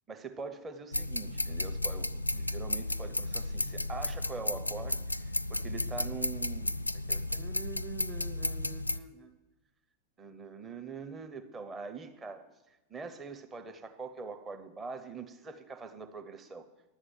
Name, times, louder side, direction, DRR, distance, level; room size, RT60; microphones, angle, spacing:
voice 1, 0.1-9.4 10.2-12.4 12.9-16.7, right 4 dB, 20° right, 7 dB, 0.9 m, -43 dB
sound 1, 0.9-9.0, left 2 dB, 85° left, 0.3 m, -33 dB
11.0 x 8.0 x 7.9 m, 1.1 s
figure-of-eight pair, 90°, 0 cm